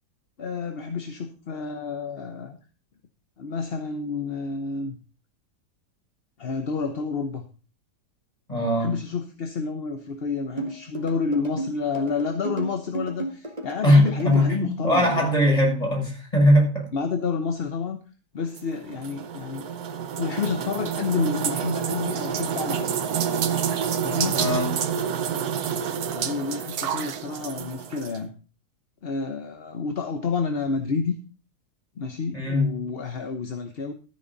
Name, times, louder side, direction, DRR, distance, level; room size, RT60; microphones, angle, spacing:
voice 1, 0.4-2.6 3.4-5.0 6.4-7.4 8.8-15.3 16.9-18.0 18.3-19.7 20.2-23.0 24.0-24.4 26.1-28.3 29.0-31.2 32.0-33.9, left 5 dB, 40° left, 6 dB, 1.0 m, -29 dB
voice 2, 8.5-8.9 13.8-16.9 24.3-24.7 32.3-32.7, left 1 dB, 20° left, -1 dB, 6.5 m, -20 dB
sound 1, 10.6-14.5, right 2 dB, 25° right, 2.2 m, -33 dB
sound 2, 18.6-28.2, right 8 dB, 65° right, 1.4 m, -28 dB
13.5 x 9.6 x 4.1 m, 0.36 s
omnidirectional pair, 1.8 m